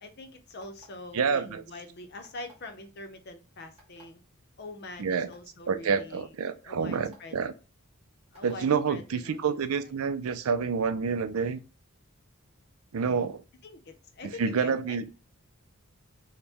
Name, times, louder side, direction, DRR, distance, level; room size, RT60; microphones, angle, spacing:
voice 1, 0.0-4.2 4.6-6.3 6.6-7.4 8.3-9.6 13.6-15.0, left 2 dB, 50° left, 0.7 m, -44 dB
sound 1, 0.6-1.1 2.2-2.7 3.8-4.0 4.8-4.9 5.3-5.4 5.8-6.0 6.9-7.2 8.3-8.6, right 1 dB, 25° right, 1.5 m, -56 dB
voice 2, 1.1-1.6 5.0-5.3 5.7-7.5 8.4-11.6 12.9-13.4 14.4-15.0, right 6 dB, 85° right, 0.5 m, -28 dB
4.3 x 2.2 x 3.4 m
head